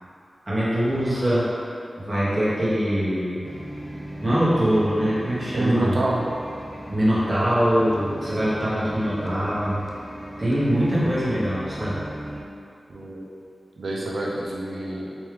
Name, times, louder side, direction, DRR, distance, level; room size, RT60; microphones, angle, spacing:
voice 1, 0.5-1.5 2.0-3.4 4.2-6.0 6.9-9.8 10.4-12.0, equal, 20° right, -11 dB, 1.2 m, -23 dB
sound 1, 3.4-12.4, right 1 dB, 10° left, 0.4 m, -38 dB
voice 2, 5.5-6.3 12.9-13.3 13.8-15.1, right 1 dB, 85° right, -3 dB, 0.5 m, -27 dB
3.5 x 3.1 x 3.3 m, 2.5 s
wide cardioid pair, 110°, 0 cm